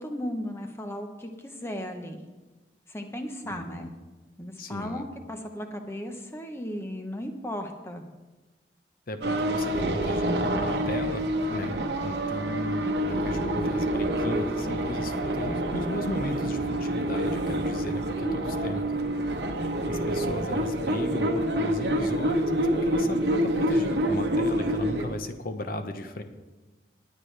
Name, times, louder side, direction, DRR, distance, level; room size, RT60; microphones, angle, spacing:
voice 1, 0.0-2.2 2.9-3.9 4.4-8.1 18.2-18.3, equal, 15° left, 5 dB, 0.9 m, -35 dB
voice 2, 3.4-3.9 4.6-5.1 9.1-18.8 19.8-26.2, left 1 dB, 55° left, 8 dB, 0.9 m, -36 dB
sound 1, 9.2-25.1, right 1 dB, 70° right, 1.0 m, -27 dB
19.0 x 8.3 x 3.3 m, 1.2 s
head